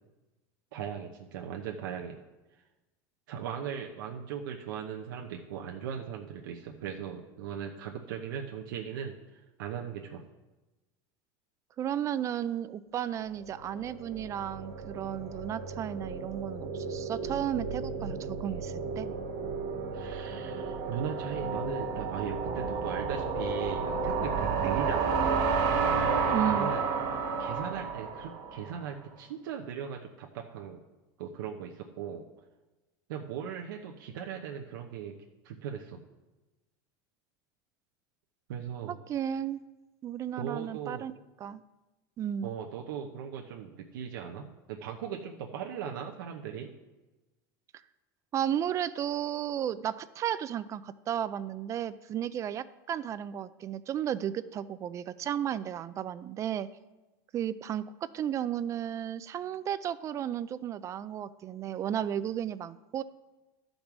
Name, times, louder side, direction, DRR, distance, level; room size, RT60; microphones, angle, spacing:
voice 1, 0.7-2.2 3.3-10.2 19.9-25.4 26.4-26.8 27.4-30.8 31.2-32.2 33.1-35.1 35.4-36.0 38.5-38.9 40.4-41.0 42.4-46.7, right 8 dB, 85° right, 0 dB, 0.9 m, -38 dB
voice 2, 11.8-19.1 26.3-26.8 38.9-39.6 40.0-41.1 41.4-41.6 42.2-42.5 48.3-56.7 57.3-63.0, right 10 dB, 30° right, 15 dB, 0.4 m, -34 dB
sound 1, 13.5-28.7, right 5 dB, 55° right, 1.5 m, -32 dB
12.0 x 5.3 x 6.0 m, 1.1 s
supercardioid pair, 135°, 11 cm